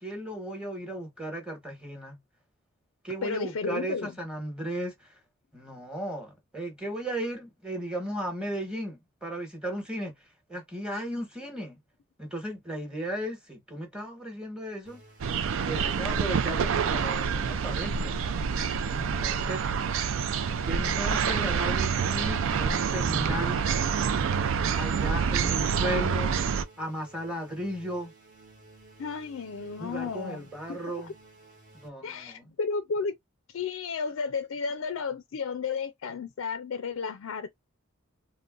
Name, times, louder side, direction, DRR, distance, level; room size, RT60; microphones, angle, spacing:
voice 1, 0.0-2.2 3.0-4.9 5.5-10.1 10.5-11.8 12.2-15.0 15.7-18.2 18.9-19.6 20.6-23.6 24.7-26.3 26.8-28.1 29.8-31.1 31.8-32.4, right 1 dB, 5° right, 1.1 m, -35 dB
voice 2, 3.2-4.1 29.0-30.4 30.7-30.8 31.0-31.1 32.0-33.1 33.5-37.6, left 5 dB, 70° left, 0.4 m, -33 dB
sound 1, 14.9-31.9, right 2 dB, 40° right, 1.2 m, -54 dB
sound 2, 15.2-26.6, right 6 dB, 65° right, 0.4 m, -27 dB
3.7 x 2.1 x 2.4 m
head